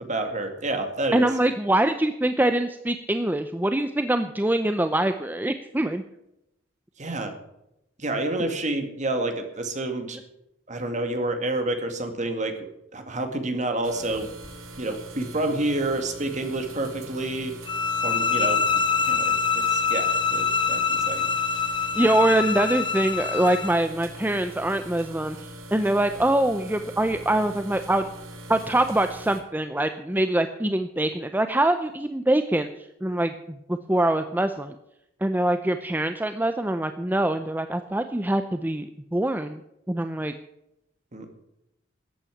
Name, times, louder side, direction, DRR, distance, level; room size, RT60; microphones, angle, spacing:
voice 1, 0.1-1.3 7.0-7.3 8.0-10.2 10.7-12.5 12.9-14.3 14.8-17.5 18.0-18.6 19.0-21.3 41.1-41.3, right 2 dB, 35° right, 6 dB, 2.2 m, -28 dB
voice 2, 1.1-6.0 21.9-25.4 25.7-28.0 28.5-32.7 33.0-34.7 35.2-39.6 39.9-40.3, right 1 dB, 10° right, 8 dB, 0.6 m, -24 dB
sound 1, 13.8-29.4, right 1 dB, 85° right, 2.7 m, -42 dB
sound 2, 17.7-23.8, left 5 dB, 25° left, 1.1 m, -25 dB
13.5 x 8.8 x 8.5 m, 0.84 s
head